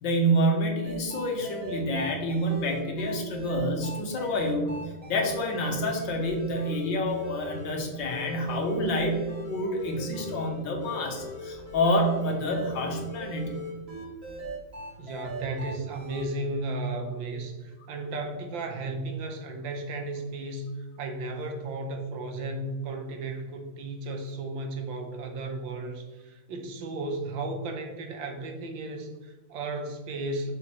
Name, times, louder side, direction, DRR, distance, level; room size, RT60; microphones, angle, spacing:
voice 1, 0.0-4.8 5.1-13.5, equal, 70° left, 1 dB, 1.8 m, -28 dB
sound 1, 0.8-16.2, left 1 dB, 30° right, 2.2 m, -40 dB
voice 2, 15.0-30.5, right 2 dB, 75° right, 4 dB, 1.6 m, -34 dB
6.4 x 5.3 x 3.0 m, 1.2 s
omnidirectional pair, 2.1 m